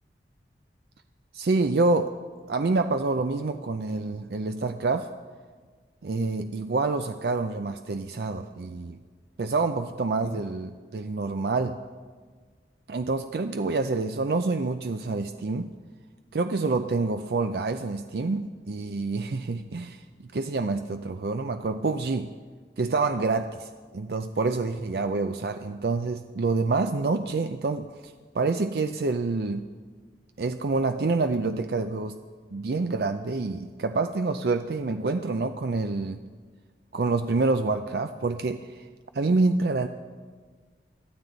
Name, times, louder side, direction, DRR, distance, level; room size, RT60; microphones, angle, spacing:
voice 1, 1.3-2.1 2.5-5.1 6.0-9.0 9.4-11.8 12.9-15.7 16.3-22.3 22.8-29.7 30.4-32.2 32.5-36.2 36.9-38.8 39.1-39.9, right 3 dB, 60° right, 8 dB, 0.5 m, -27 dB
21.5 x 13.0 x 4.0 m, 1.5 s
head